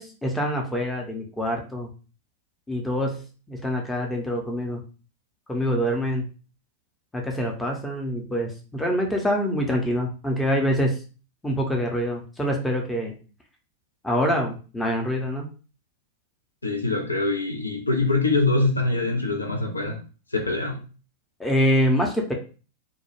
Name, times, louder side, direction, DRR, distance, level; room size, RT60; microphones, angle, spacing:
voice 1, 0.0-1.9 2.7-4.8 5.5-6.3 7.1-11.0 11.4-13.2 14.0-15.5 21.4-22.3, equal, 5° left, 0.6 m, -25 dB
voice 2, 16.6-20.0 20.3-20.8, left 2 dB, 80° left, 0.4 m, -24 dB
2.2 x 2.0 x 3.0 m
figure-of-eight pair, 90°, 0 cm